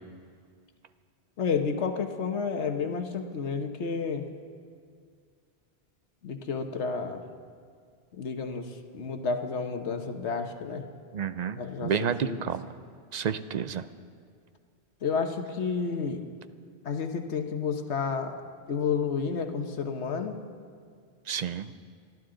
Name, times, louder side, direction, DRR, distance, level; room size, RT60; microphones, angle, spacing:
voice 1, 1.4-4.3 6.2-7.2 8.1-10.9 11.5-12.5 15.0-16.2 16.8-18.4 18.7-20.4, left 5 dB, 85° left, 6 dB, 1.3 m, -31 dB
voice 2, 11.1-12.7 13.1-13.9 21.3-21.7, right 8 dB, 55° right, 12 dB, 0.5 m, -30 dB
29.5 x 12.5 x 3.8 m, 2.1 s
omnidirectional pair, 1.1 m